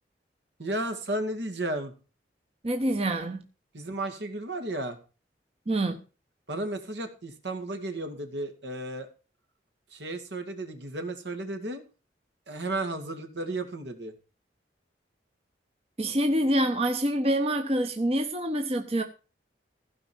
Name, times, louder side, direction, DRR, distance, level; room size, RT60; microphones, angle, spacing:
voice 1, 0.6-1.9 3.7-5.0 6.5-9.1 9.9-11.8 12.5-14.1, right 2 dB, 70° right, 2.3 m, -33 dB
voice 2, 2.6-3.4 5.7-6.0 16.0-19.0, right 1 dB, 35° right, 1.0 m, -26 dB
16.0 x 5.3 x 7.3 m
head